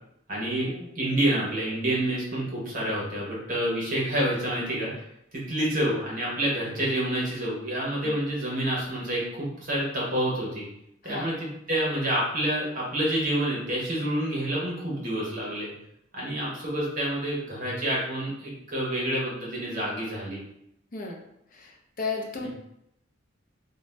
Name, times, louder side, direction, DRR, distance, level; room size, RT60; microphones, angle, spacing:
voice 1, 0.3-4.9 5.3-10.6 11.0-15.7 16.1-20.4 22.4-22.5, right 1 dB, 45° right, -5 dB, 0.9 m, -28 dB
voice 2, 21.5-22.5, left 4 dB, 45° left, 1 dB, 0.5 m, -34 dB
2.6 x 2.1 x 3.2 m, 0.79 s
head